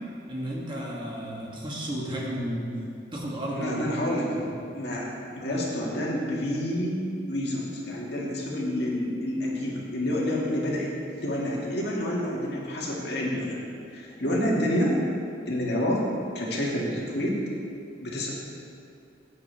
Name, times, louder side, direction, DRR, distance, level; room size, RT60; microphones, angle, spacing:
voice 1, 0.3-2.7 3.1-3.8 4.2-4.4, right 1 dB, 25° right, -4 dB, 1.6 m, -32 dB
voice 2, 3.5-7.0 7.3-10.9 11.2-13.6 13.9-15.0 15.5-16.0 16.3-17.4 18.0-18.3, left 1 dB, 60° left, -4 dB, 2.0 m, -28 dB
14.5 x 8.6 x 3.4 m, 2.5 s
head